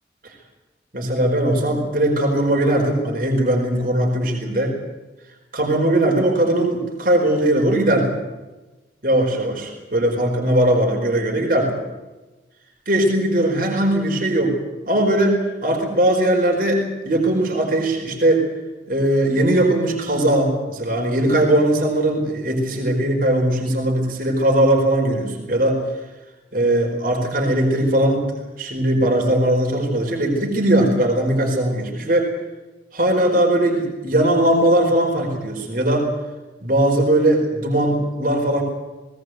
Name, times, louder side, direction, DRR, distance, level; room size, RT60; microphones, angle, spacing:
voice 1, 0.9-4.8 5.5-8.1 9.0-11.7 12.9-14.6 14.9-18.4 18.9-25.8 26.5-28.3 28.6-32.3 32.9-36.1 36.6-38.6, right 1 dB, 50° right, 1 dB, 4.6 m, -19 dB
19.0 x 19.0 x 7.9 m, 1.1 s
head